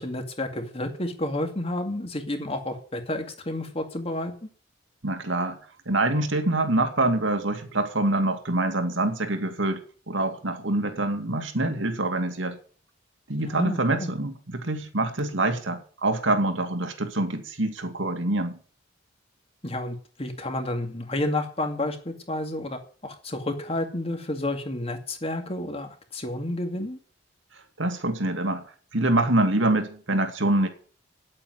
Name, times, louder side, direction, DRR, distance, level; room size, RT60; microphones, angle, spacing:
voice 1, 0.0-4.5 13.4-14.1 19.6-27.0, left 1 dB, 30° left, 6 dB, 2.3 m, -31 dB
voice 2, 5.0-5.6 5.9-12.6 13.3-18.6 27.8-28.6 28.9-30.7, right 2 dB, 80° right, 6 dB, 2.5 m, -25 dB
9.9 x 8.8 x 9.5 m, 0.42 s
head